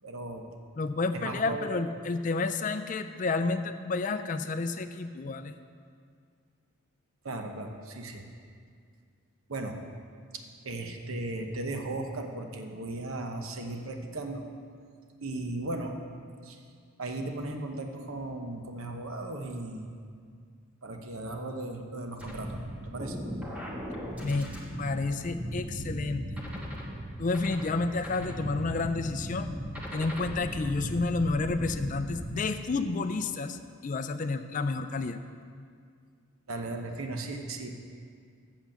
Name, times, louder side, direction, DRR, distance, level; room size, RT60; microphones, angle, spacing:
voice 1, 0.0-0.4 1.1-1.7 7.2-8.3 9.5-9.8 10.3-14.4 15.2-16.0 16.4-16.6 17.0-19.9 20.8-22.6 22.8-23.2 23.5-23.6 24.9-25.0 36.5-37.7, right 2 dB, 70° right, 4 dB, 0.8 m, -36 dB
voice 2, 0.8-5.5 24.2-24.5 24.8-26.2 27.2-29.5 29.9-35.2, left 3 dB, 35° left, 9 dB, 0.4 m, -30 dB
sound 1, 22.2-32.4, equal, 5° right, 1.2 m, -37 dB
7.7 x 7.0 x 7.2 m, 2.2 s
head